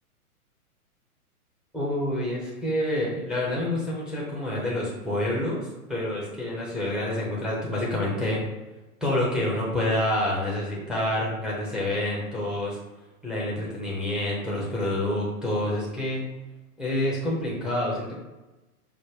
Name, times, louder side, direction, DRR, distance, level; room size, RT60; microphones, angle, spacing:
voice 1, 1.7-5.6 5.9-8.4 9.0-12.8 13.2-16.2 16.8-18.1, left 1 dB, ahead, -5 dB, 0.6 m, -27 dB
5.0 x 2.1 x 4.5 m, 1.1 s
hypercardioid pair, 130°, 45 cm